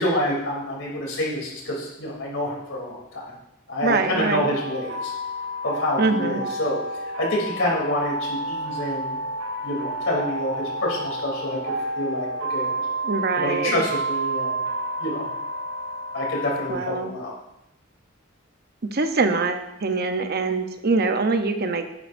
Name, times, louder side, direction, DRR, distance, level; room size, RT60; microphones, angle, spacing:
voice 1, 0.0-3.3 3.7-5.1 5.6-6.8 7.2-9.2 9.6-12.7 13.4-14.7 15.0-15.3 16.1-17.3, left 1 dB, 70° left, -3 dB, 3.2 m, -27 dB
voice 2, 3.8-4.5 6.0-6.4 13.0-13.8 16.7-17.1 18.9-21.9, right 3 dB, 50° right, 7 dB, 0.8 m, -24 dB
sound 1, 4.2-16.7, right 1 dB, 90° right, 2.9 m, -30 dB
10.5 x 9.9 x 2.6 m, 0.88 s
head